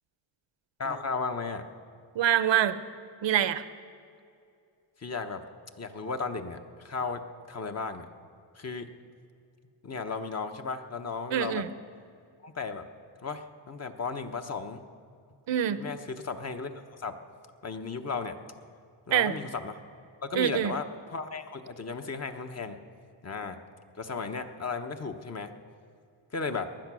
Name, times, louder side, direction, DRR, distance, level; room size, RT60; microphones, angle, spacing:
voice 1, 0.8-1.6 5.0-5.4 5.8-8.0 8.5-8.9 9.8-11.6 12.4-12.8 13.2-14.8 15.8-17.1 17.6-18.4 19.1-19.8 20.2-22.8 23.2-23.6 23.9-25.5 26.3-26.7, left 4 dB, 30° left, 7 dB, 1.1 m, -35 dB
voice 2, 2.1-2.8 3.2-3.6 11.3-11.7 15.5-15.8 19.1-19.4 20.3-20.7, right 10 dB, 65° right, 13 dB, 0.9 m, -25 dB
19.5 x 11.5 x 6.3 m, 2.4 s
cardioid pair, 85°, 48 cm